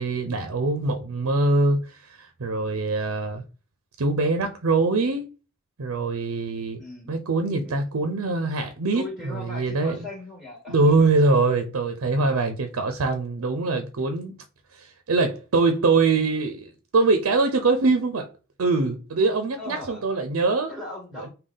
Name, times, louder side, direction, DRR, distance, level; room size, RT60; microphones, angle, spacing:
voice 1, 0.0-3.4 4.0-5.2 5.8-6.8 7.1-10.0 10.7-14.3 14.7-18.3 18.6-20.7 21.2-21.3, right 3 dB, 90° right, 0.6 m, -23 dB
voice 2, 6.8-7.1 7.6-7.8 8.9-11.1 19.6-20.1 20.7-21.3, left 2 dB, ahead, 1.5 m, -38 dB
5.2 x 2.3 x 3.8 m
head